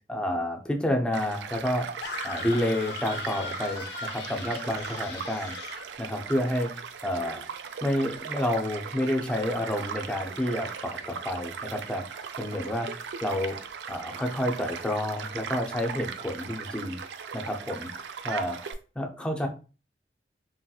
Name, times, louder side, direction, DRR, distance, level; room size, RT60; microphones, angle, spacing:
voice 1, 0.1-1.9 2.2-5.5 6.0-6.7 7.0-7.4 7.8-12.0 12.4-13.6 13.9-17.0 17.3-17.9 18.2-18.7 19.0-19.5, left 1 dB, 5° left, 2 dB, 0.4 m, -29 dB
Child speech kid speaking / Stream / Car passing by, 1.1-18.7, right 6 dB, 75° right, 0.3 m, -38 dB
sound 1, 2.0-5.9, left 4 dB, 75° left, 0.5 m, -38 dB
3.0 x 2.8 x 2.3 m, 0.35 s
head